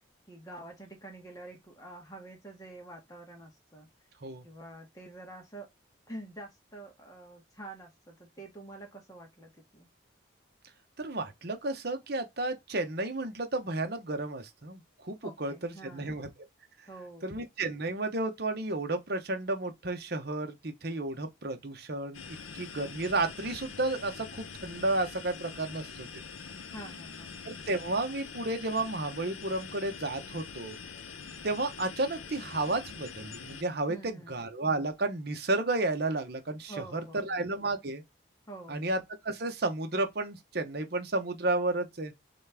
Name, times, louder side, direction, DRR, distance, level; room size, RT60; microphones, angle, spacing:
voice 1, 0.3-3.9 4.4-5.7 6.1-9.9 15.2-16.2 16.9-17.3 26.7-27.3 33.9-34.4 36.7-37.4 38.5-38.9, right 2 dB, 20° left, 1.6 m, -47 dB
voice 2, 11.0-16.3 17.2-22.2 22.5-26.1 27.4-30.8 31.4-38.0 38.7-42.1, right 2 dB, 50° right, 1.0 m, -32 dB
sound 1, 22.1-33.6, left 6 dB, 90° left, 0.7 m, -44 dB
4.2 x 3.4 x 3.4 m
head